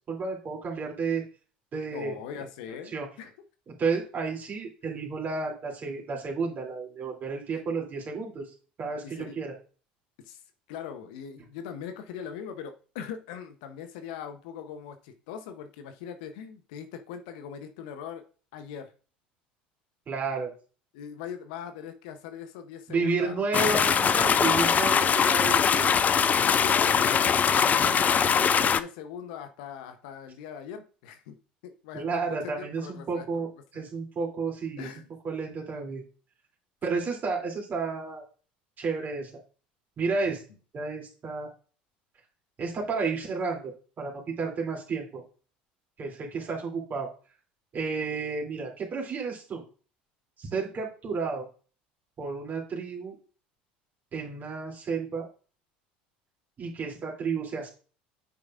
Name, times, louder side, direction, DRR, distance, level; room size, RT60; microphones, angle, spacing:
voice 1, 0.1-1.2 1.7-2.2 2.9-3.1 3.7-8.5 8.8-9.5 20.1-20.5 22.9-25.9 31.9-33.5 33.7-34.9 35.2-36.0 36.8-38.2 38.8-39.3 40.0-40.4 40.7-41.5 42.6-43.7 44.0-45.2 46.0-47.1 47.7-49.6 50.4-51.5 52.2-53.1 54.1-55.3 56.6-57.7, right 4 dB, 40° right, -2 dB, 3.0 m, -31 dB
voice 2, 1.9-3.3 7.5-7.6 9.0-9.4 10.2-10.4 10.7-18.2 18.5-18.9 20.9-23.5 26.4-31.4 31.6-33.4 33.7-33.8 34.8-35.0 36.9-37.1, left 8 dB, 70° left, 9 dB, 0.8 m, -41 dB
sound 1, 23.5-28.8, left 7 dB, 35° left, 0.4 m, -22 dB
8.5 x 6.4 x 2.5 m, 0.37 s
hypercardioid pair, 75°, 5 cm